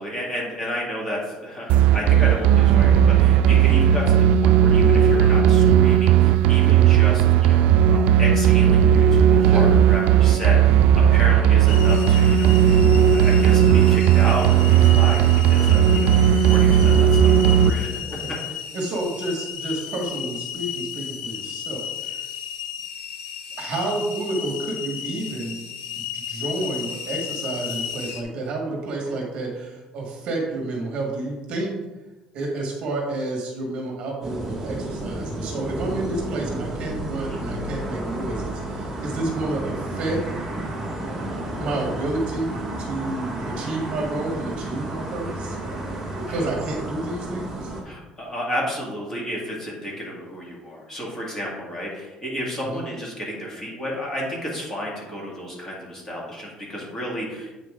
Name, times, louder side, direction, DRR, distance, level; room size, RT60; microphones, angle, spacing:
voice 1, 0.0-12.8 13.1-18.0 18.5-18.6 37.2-37.4 46.3-46.4 47.8-57.5, equal, 20° left, -3 dB, 2.0 m, -32 dB
sound 1, 1.7-17.7, right 9 dB, 65° right, 0.3 m, -16 dB
sound 2, 11.7-28.2, left 9 dB, 80° left, 0.9 m, -34 dB
voice 2, 18.7-22.2 23.6-25.6 26.0-31.7 32.3-40.2 41.6-42.5 42.8-45.6 46.2-47.7 52.6-52.8, right 2 dB, 50° right, 0 dB, 1.7 m, -30 dB
sound 3, 34.2-47.8, right 1 dB, 10° right, 1.8 m, -31 dB
8.2 x 5.2 x 3.7 m, 1.1 s
cardioid pair, 165°, 2 cm